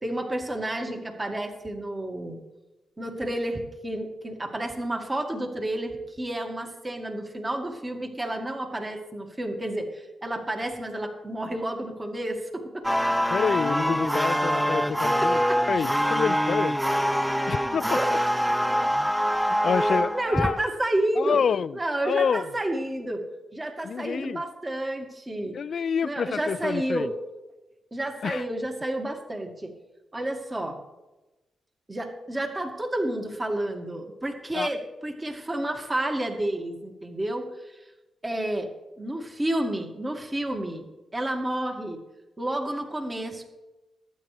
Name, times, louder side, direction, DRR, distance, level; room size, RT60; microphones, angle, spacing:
voice 1, 0.0-2.4 3.0-12.9 15.5-15.6 17.9-18.1 19.8-21.4 21.7-23.3 23.5-25.6 26.0-27.1 27.9-29.7 30.1-30.8 31.9-37.7 38.2-38.7 39.0-40.9 41.1-42.0 42.4-43.4, right 1 dB, 25° right, 3 dB, 2.1 m, -30 dB
sound 1, 12.8-20.7, equal, ahead, 0.5 m, -24 dB
voice 2, 13.3-16.8 17.5-18.0 19.3-20.6 21.2-22.5 23.8-24.4 25.5-27.1 28.2-28.5 34.5-34.7, left 7 dB, 65° left, 20 dB, 0.3 m, -28 dB
20.0 x 9.2 x 3.4 m, 1.1 s
supercardioid pair, 50°, 0 cm